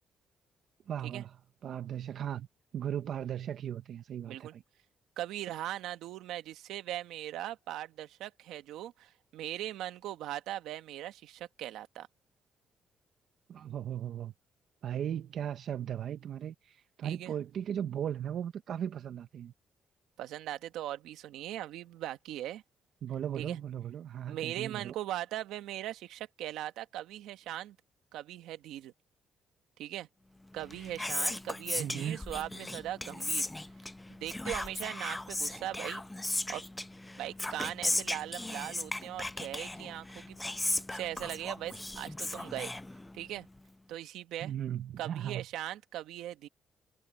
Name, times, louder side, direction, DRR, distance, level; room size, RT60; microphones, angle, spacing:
voice 1, 0.9-1.4 1.6-2.5 2.7-4.6 13.5-14.3 14.8-19.5 23.0-24.9 31.8-32.2 44.4-45.4, right 9 dB, 65° right, 0.9 m, -37 dB
voice 2, 5.2-12.1 17.0-17.3 20.2-22.6 23.4-23.6 24.3-27.8 28.1-28.9 29.8-30.1 30.5-33.5 34.2-36.0 36.5-36.6 37.2-40.4 40.9-42.7 43.1-43.5 43.9-44.5 45.0-46.5, right 13 dB, 90° right, 1.3 m, -39 dB
Whispering, 30.5-43.4, left 2 dB, 10° left, 0.7 m, -37 dB
cardioid pair, 90°, 0 cm